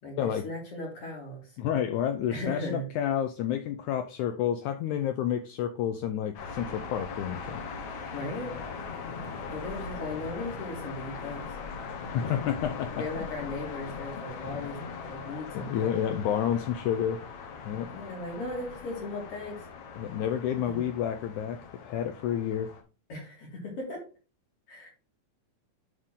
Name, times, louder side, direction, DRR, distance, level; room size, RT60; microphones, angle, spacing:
voice 1, 0.0-1.5 2.3-2.9 8.1-8.6 9.5-11.6 12.2-12.3 12.9-15.9 17.9-19.7 20.6-20.8 23.1-24.0 24.7-24.9, left 2 dB, 45° left, 2.7 m, -37 dB
voice 2, 1.6-7.6 12.1-12.9 15.5-17.2 17.6-17.9 20.0-22.7, left 9 dB, 80° left, 1.8 m, -30 dB
sound 1, 6.3-22.8, left 5 dB, 65° left, 2.5 m, -40 dB
11.0 x 3.7 x 3.7 m
omnidirectional pair, 3.9 m